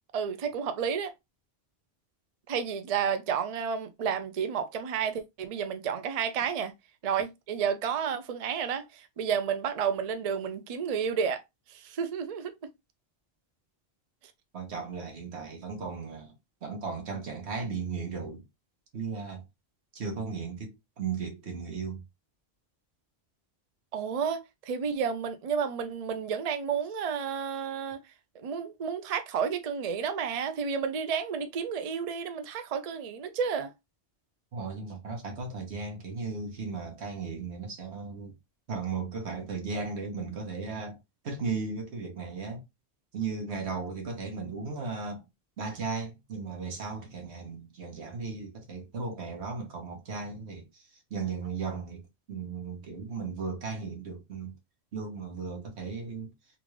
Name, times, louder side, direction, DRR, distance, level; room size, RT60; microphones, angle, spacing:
voice 1, 0.1-1.1 2.5-6.7 7.0-11.4 11.7-12.5 23.9-28.0 28.3-33.7, right 7 dB, 50° right, 0.5 m, -31 dB
voice 2, 14.5-16.3 16.6-18.4 18.9-19.4 19.9-22.0 34.5-38.3 38.7-41.0 41.2-42.6 43.1-45.2 45.6-50.8 51.1-52.0 52.3-54.5 54.9-56.3, right 4 dB, 85° right, 1.4 m, -36 dB
3.7 x 2.4 x 3.1 m
omnidirectional pair, 1.1 m